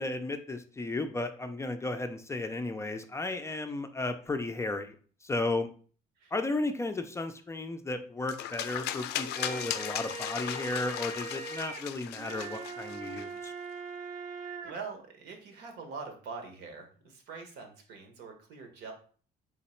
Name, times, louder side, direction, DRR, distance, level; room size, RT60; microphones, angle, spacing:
voice 1, 0.0-5.0 5.2-5.7 6.3-13.5, left 2 dB, 15° left, 7 dB, 0.4 m, -34 dB
sound 1, 8.3-13.5, left 12 dB, 80° left, 0.4 m, -37 dB
sound 2, 9.1-14.7, right 4 dB, 55° right, 0.6 m, -41 dB
voice 2, 14.6-18.9, right 4 dB, 80° right, 3 dB, 1.2 m, -44 dB
3.8 x 3.0 x 4.3 m, 0.43 s
cardioid pair, 110°, 17 cm